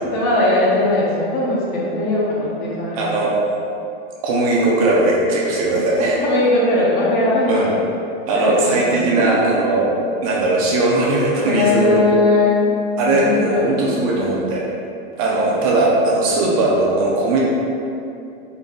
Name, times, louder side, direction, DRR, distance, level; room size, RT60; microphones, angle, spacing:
voice 1, 0.0-3.0 5.7-5.8 6.2-7.7 8.3-9.4 11.4-12.6 13.1-14.4, left 2 dB, 30° left, -5 dB, 0.5 m, -19 dB
voice 2, 3.0-3.3 4.2-6.2 7.5-7.7 8.3-9.9 10.2-12.1 13.0-14.6 15.2-17.4, right 2 dB, 35° right, -4 dB, 0.4 m, -18 dB
3.9 x 2.1 x 3.5 m, 2.6 s
supercardioid pair, 160°, 32 cm